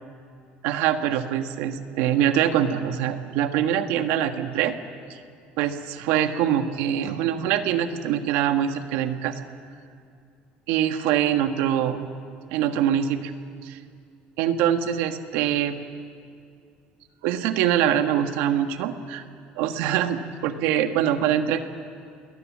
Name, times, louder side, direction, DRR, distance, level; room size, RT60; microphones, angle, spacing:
voice 1, 0.6-4.7 5.1-5.2 5.6-9.3 10.7-12.1 12.5-13.3 13.6-13.8 14.4-15.7 17.2-19.2 19.6-21.6, right 10 dB, 85° right, 7 dB, 1.6 m, -24 dB
29.0 x 21.5 x 7.4 m, 2.3 s
cardioid pair, 150°, 3 cm